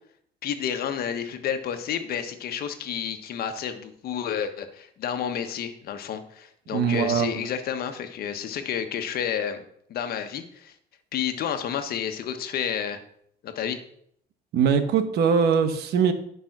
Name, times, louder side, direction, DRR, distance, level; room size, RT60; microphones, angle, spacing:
voice 1, 0.4-9.6 9.9-10.7 11.1-13.0 13.4-13.8, left 8 dB, 65° left, 7 dB, 1.3 m, -30 dB
voice 2, 6.7-7.5 14.5-16.1, right 6 dB, 75° right, 8 dB, 1.3 m, -22 dB
10.5 x 5.5 x 6.0 m, 0.67 s
cardioid pair, 110°, 17 cm